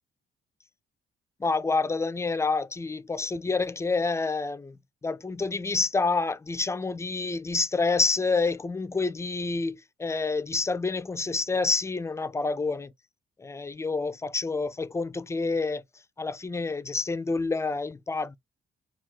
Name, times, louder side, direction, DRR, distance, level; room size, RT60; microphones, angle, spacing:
voice 1, 1.4-4.8 5.0-12.9 13.4-15.8 16.2-18.4, left 3 dB, 15° left, 0.4 m, -28 dB
3.6 x 2.3 x 4.2 m
cardioid pair, 90°, 20 cm